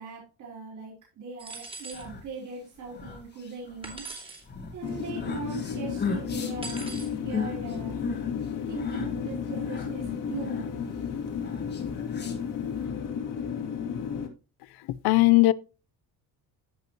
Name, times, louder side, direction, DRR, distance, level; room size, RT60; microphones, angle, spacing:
voice 1, 0.0-4.0 4.7-8.0 8.7-10.6, right 4 dB, 50° right, 4.5 m, -40 dB
sound 1, 1.4-2.1 3.8-4.4 6.6-7.1, right 3 dB, 15° right, 2.6 m, -40 dB
sound 2, 1.6-12.8, left 5 dB, 25° left, 1.8 m, -39 dB
sound 3, 4.8-14.3, left 7 dB, 55° left, 2.7 m, -33 dB
voice 2, 14.9-15.5, left 20 dB, 80° left, 0.7 m, -19 dB
14.5 x 5.6 x 3.0 m
cardioid pair, 160°, 37 cm